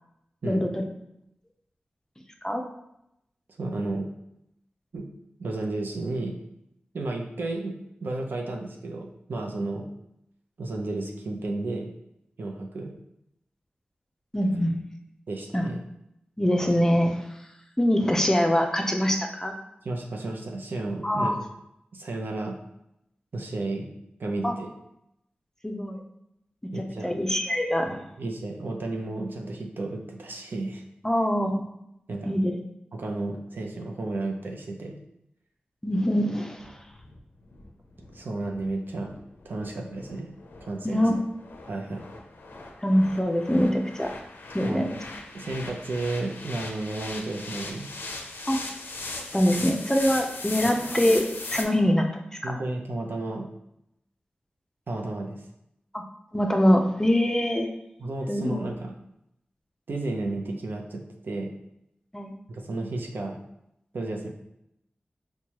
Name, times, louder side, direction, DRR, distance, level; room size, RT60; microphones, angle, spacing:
voice 1, 0.4-0.9 2.4-2.6 14.3-14.8 15.5-15.7 16.4-17.3 17.8-19.5 21.0-21.4 24.4-24.5 25.6-26.0 27.0-28.1 31.0-31.7 32.3-32.6 35.8-36.8 40.8-41.2 42.8-44.1 44.5-45.0 48.5-48.6 49.2-52.1 52.4-52.6 55.9-56.0 56.3-57.7 58.3-58.6 62.1-62.3, equal, 15° left, 3 dB, 0.5 m, -24 dB
voice 2, 3.6-4.1 4.9-5.1 5.4-6.4 6.9-9.9 10.6-11.9 12.4-12.9 15.3-15.8 19.8-21.4 21.9-22.6 23.3-23.9 24.2-24.7 26.7-27.1 27.8-30.8 32.1-32.4 32.9-35.0 38.1-39.1 39.5-40.3 40.6-41.0 41.7-42.0 44.6-44.8 45.3-47.9 50.6-50.7 52.4-53.5 54.9-55.4 58.0-58.9 59.9-61.5 62.5-63.4 63.9-64.3, right 2 dB, 70° right, 1 dB, 0.5 m, -32 dB
sound 1, 36.6-51.6, left 2 dB, 80° left, 0.4 m, -39 dB
4.5 x 2.2 x 2.9 m, 0.81 s
cardioid pair, 55°, 3 cm